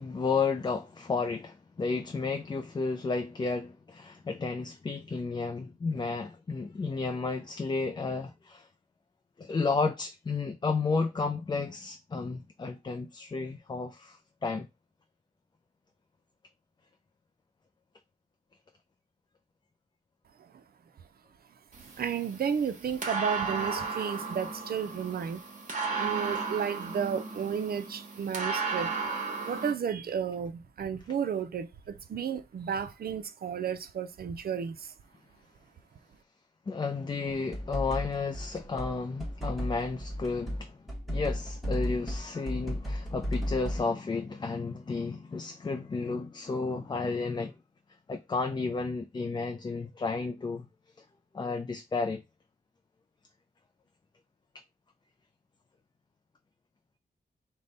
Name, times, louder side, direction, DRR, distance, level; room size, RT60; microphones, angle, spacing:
voice 1, 0.0-8.7 9.4-14.7 36.7-40.8 41.1-47.5 48.1-50.7 51.3-52.2, left 4 dB, 25° left, 0.4 m, -32 dB
sound 1, 21.7-29.7, right 4 dB, 50° right, 1.2 m, -35 dB
voice 2, 22.0-25.4 26.0-28.9 29.4-34.9, right 7 dB, 70° right, 0.5 m, -33 dB
sound 2, 37.3-43.8, equal, ahead, 1.1 m, -34 dB
5.0 x 2.2 x 3.9 m
wide cardioid pair, 125°, 17 cm